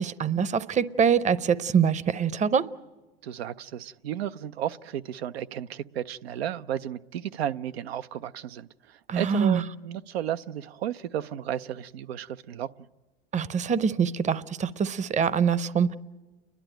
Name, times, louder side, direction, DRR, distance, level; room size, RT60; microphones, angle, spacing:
voice 1, 0.0-2.7 9.1-9.6 13.3-16.0, right 6 dB, 25° right, 0.7 m, -24 dB
voice 2, 3.2-12.7, right 10 dB, 90° right, 0.6 m, -33 dB
30.0 x 11.0 x 9.0 m
hypercardioid pair, 90°, 30 cm